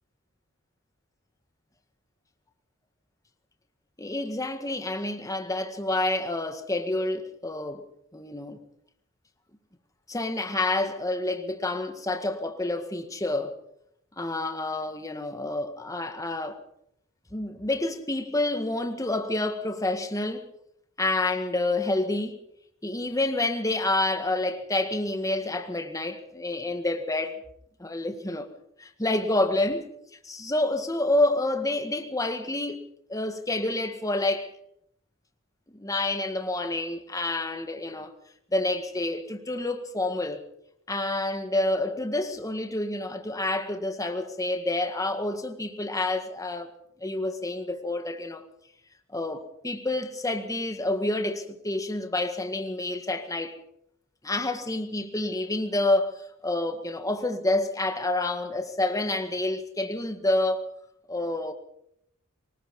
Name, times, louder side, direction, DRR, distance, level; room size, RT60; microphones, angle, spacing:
voice 1, 4.0-7.9 8.1-8.6 10.1-13.6 14.2-16.6 17.3-20.5 21.0-22.4 22.8-27.4 27.8-28.5 28.8-29.9 30.2-34.5 35.7-38.1 38.5-40.4 40.9-46.7 47.0-48.4 49.1-53.6 54.2-60.7 61.1-61.5, left 2 dB, 15° left, 1.9 m, -28 dB
24.5 x 19.5 x 5.5 m
head